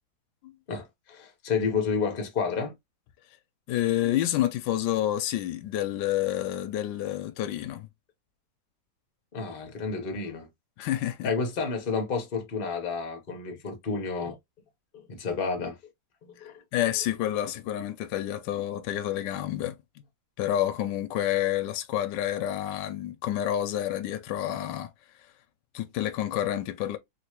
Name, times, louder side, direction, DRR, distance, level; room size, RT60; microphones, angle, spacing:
voice 1, 0.7-2.7 9.3-10.5 11.2-14.4 14.9-15.8 16.4-16.5, left 5 dB, 40° left, 0.8 m, -30 dB
voice 2, 3.7-7.9 10.8-11.3 16.7-19.8 20.4-24.9 25.7-27.0, left 12 dB, 80° left, 1.2 m, -29 dB
3.2 x 3.0 x 2.9 m
omnidirectional pair, 2.0 m